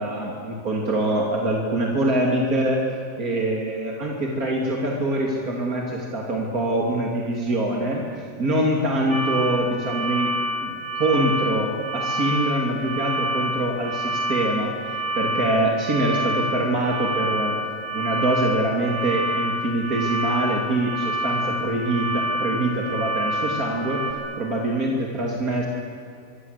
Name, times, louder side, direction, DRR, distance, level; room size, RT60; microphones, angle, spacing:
voice 1, 0.0-2.8 3.2-10.3 10.6-17.6 17.9-25.7, right 1 dB, 75° right, -1 dB, 3.3 m, -24 dB
sound 1, 9.1-24.1, right 1 dB, 75° left, 4.5 m, -27 dB
25.0 x 24.5 x 8.2 m, 2.5 s
omnidirectional pair, 1.6 m